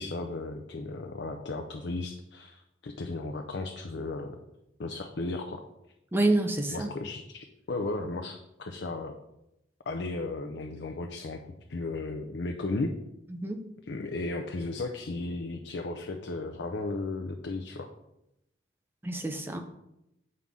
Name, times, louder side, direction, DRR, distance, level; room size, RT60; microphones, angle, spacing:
voice 1, 0.0-4.4 4.8-5.6 6.7-9.2 9.9-11.4 11.7-12.9 13.9-17.9, left 2 dB, 80° left, 5 dB, 0.6 m, -35 dB
voice 2, 6.1-6.9 13.3-13.6 19.0-19.6, right 2 dB, 10° right, 5 dB, 0.5 m, -27 dB
7.6 x 5.5 x 3.6 m, 0.86 s
head